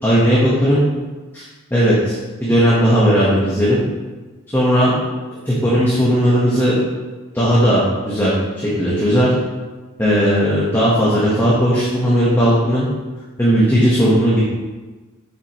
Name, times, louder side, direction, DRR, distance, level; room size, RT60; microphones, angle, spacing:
voice 1, 0.0-0.8 1.3-1.4 1.7-3.8 4.5-4.9 5.5-6.8 7.3-9.3 10.0-12.9 13.4-14.4, equal, 10° left, -8 dB, 1.4 m, -16 dB
7.8 x 7.5 x 3.2 m, 1.3 s
head